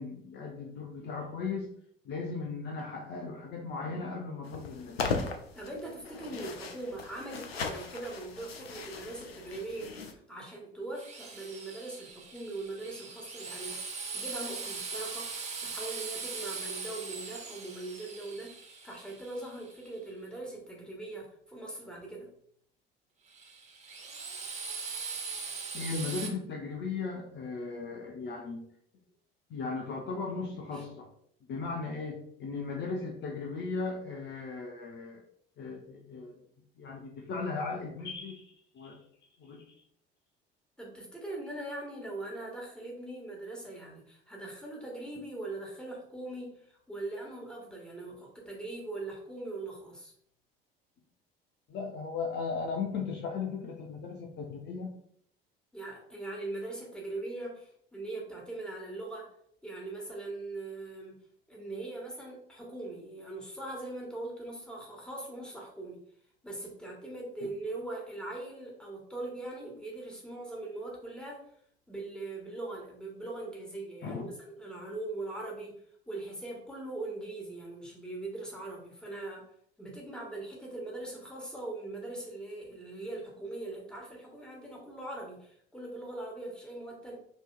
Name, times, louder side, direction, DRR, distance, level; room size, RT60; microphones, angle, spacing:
voice 1, 0.0-1.7 2.0-5.2 25.4-28.6 29.5-31.1 31.5-35.2 35.6-36.4 36.8-39.0 39.4-39.7 51.7-54.9 74.0-74.2, left 4 dB, 35° left, 2 dB, 0.6 m, -37 dB
sound 1, 4.4-10.1, left 4 dB, 85° left, 0.5 m, -38 dB
voice 2, 5.5-22.3 30.7-30.8 40.8-50.1 55.7-59.3 59.6-61.1 61.5-66.0 66.4-71.4 71.9-74.3 74.6-75.8 76.1-79.4 79.8-87.2, right 2 dB, 5° left, -2 dB, 1.5 m, -41 dB
Drill, 10.9-19.9 23.3-26.3, right 4 dB, 25° right, 0.9 m, -40 dB
5.4 x 2.9 x 2.3 m, 0.66 s
figure-of-eight pair, 60°, 30 cm